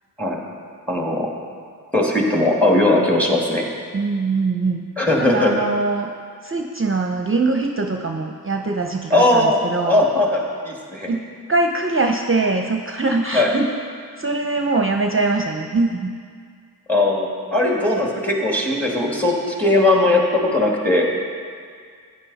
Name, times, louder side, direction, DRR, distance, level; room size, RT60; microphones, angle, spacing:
voice 1, 0.9-1.3 1.9-3.7 5.0-5.5 9.1-11.1 13.3-13.5 16.9-21.1, left 2 dB, 5° left, -2 dB, 2.3 m, -19 dB
voice 2, 3.9-4.9 5.2-6.1 6.4-10.0 11.1-11.2 11.5-13.7 14.2-16.1, right 3 dB, 35° right, 3 dB, 0.7 m, -22 dB
14.0 x 9.8 x 4.2 m, 2.1 s
wide cardioid pair, 60°, 38 cm